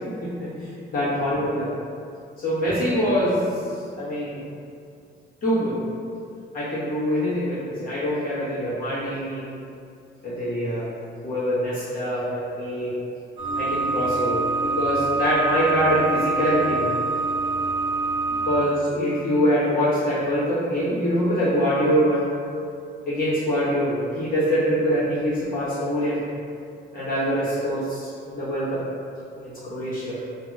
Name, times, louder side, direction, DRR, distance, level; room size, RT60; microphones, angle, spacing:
voice 1, 0.2-1.7 2.4-3.5 4.0-4.4 5.4-5.8 6.5-9.5 10.2-10.9 11.2-12.9 13.6-16.9 18.5-22.3 23.1-26.2 26.9-28.8 29.4-30.2, equal, 45° left, -12 dB, 1.1 m, -24 dB
sound 1, 13.4-18.6, right 3 dB, 65° right, 0.8 m, -25 dB
2.8 x 2.7 x 2.3 m, 2.5 s
cardioid pair, 90°, 20 cm